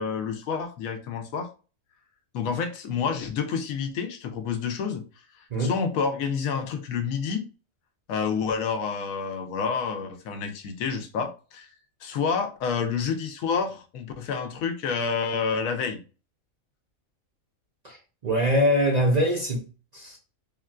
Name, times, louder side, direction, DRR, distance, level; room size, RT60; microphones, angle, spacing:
voice 1, 0.0-1.5 2.3-5.0 5.6-7.5 8.1-11.7 12.0-16.0, left 6 dB, 80° left, 1.0 m, -28 dB
voice 2, 18.2-19.7 19.9-20.2, equal, 45° right, 0.6 m, -23 dB
3.5 x 2.3 x 2.3 m
omnidirectional pair, 1.4 m